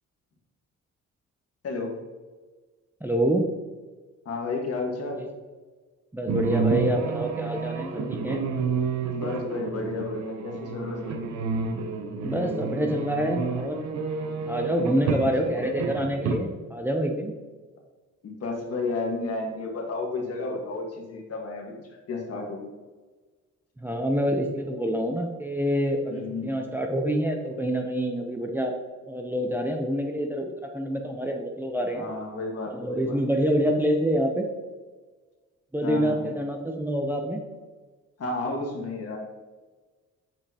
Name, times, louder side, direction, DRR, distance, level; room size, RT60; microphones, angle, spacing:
voice 1, 1.6-1.9 4.2-5.2 9.1-11.2 15.0-15.1 18.2-21.7 22.1-22.7 26.1-26.6 31.9-33.2 35.8-36.3 38.2-39.2, left 3 dB, 50° left, 0 dB, 1.5 m, -32 dB
voice 2, 3.0-3.5 5.2-5.3 6.1-8.4 12.2-13.8 14.5-17.4 23.8-28.7 29.0-32.0 32.7-34.5 35.7-37.4, equal, 5° right, 2 dB, 0.6 m, -27 dB
sound 1, 6.3-16.3, right 4 dB, 65° right, 0.8 m, -30 dB
7.5 x 5.1 x 2.8 m, 1.3 s
cardioid pair, 90°, 30 cm